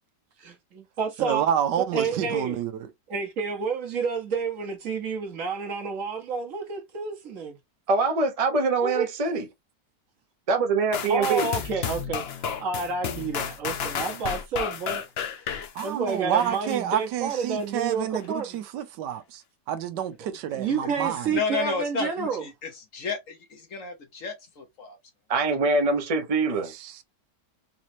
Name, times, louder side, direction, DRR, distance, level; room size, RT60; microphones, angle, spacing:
voice 1, 0.4-1.5 1.8-2.6 3.1-7.6 8.8-9.0 11.0-15.0 15.8-18.6 20.5-22.4, right 5 dB, 55° right, 1.3 m, -30 dB
voice 2, 1.2-2.9 15.7-19.4 19.7-21.4 26.7-27.0, right 9 dB, 85° right, 1.3 m, -29 dB
voice 3, 7.9-9.5 10.5-11.5 25.3-26.7, right 3 dB, 30° right, 0.7 m, -24 dB
sound 1, 10.9-16.8 17.3-17.4, left 7 dB, 80° left, 0.5 m, -32 dB
voice 4, 21.3-25.0, left 4 dB, 55° left, 1.1 m, -32 dB
4.1 x 3.0 x 2.7 m
omnidirectional pair, 1.9 m